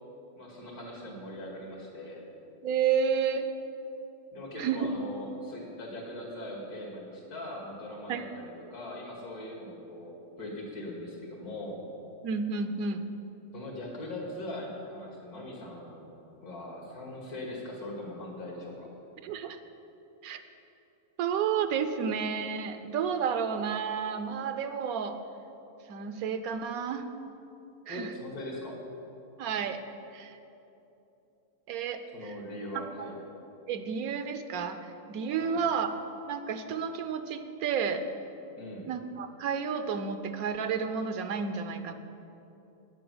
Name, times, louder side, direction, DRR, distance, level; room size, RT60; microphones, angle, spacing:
voice 1, 0.4-2.2 4.3-11.8 13.5-16.1 16.4-18.9 27.9-28.7 32.1-33.1 35.4-35.6 38.6-38.9, left 1 dB, 85° left, -1 dB, 2.8 m, -40 dB
voice 2, 2.6-3.5 4.6-4.9 8.1-8.2 12.2-13.1 19.2-19.6 20.2-20.4 21.2-25.2 25.9-27.1 27.9-28.1 29.4-29.8 30.1-30.4 31.7-32.3 32.7-32.8 33.7-35.9 36.3-38.0 38.8-41.9, right 6 dB, 75° right, 9 dB, 1.1 m, -31 dB
9.5 x 7.8 x 7.7 m, 2.9 s
omnidirectional pair, 1.6 m